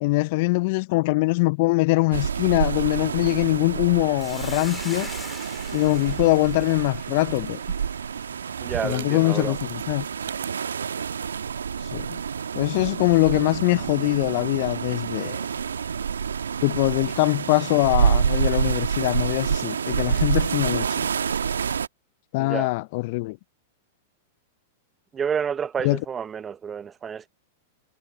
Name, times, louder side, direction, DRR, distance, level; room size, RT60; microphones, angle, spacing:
voice 1, 0.0-5.1 5.7-7.6 8.8-10.0 11.8-12.2 12.6-15.4 16.6-21.1 22.3-23.4 25.8-26.0, left 24 dB, 50° left, 0.5 m, -23 dB
sound 1, 2.1-21.9, right 7 dB, 75° right, 1.3 m, -28 dB
sound 2, 2.7-10.5, right 13 dB, 60° right, 7.8 m, -44 dB
Hiss, 4.2-8.7, left 2 dB, 5° left, 2.8 m, -43 dB
voice 2, 8.6-9.6 22.4-22.7 25.1-27.3, right 7 dB, 20° right, 0.8 m, -29 dB
figure-of-eight pair, 100°, 0 cm